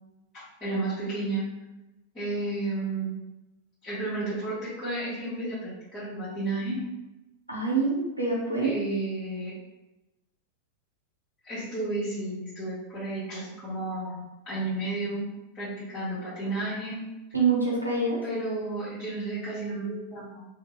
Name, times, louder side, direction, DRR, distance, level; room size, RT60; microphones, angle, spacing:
voice 1, 0.3-1.5 2.1-3.1 3.8-6.8 8.6-9.5 11.4-15.3 15.5-17.0 18.2-20.5, right 2 dB, 25° left, -11 dB, 0.9 m, -32 dB
voice 2, 7.5-8.7 17.3-18.2, right 4 dB, 90° right, -4 dB, 0.6 m, -25 dB
2.3 x 2.0 x 3.0 m, 1.0 s
figure-of-eight pair, 90°, 0 cm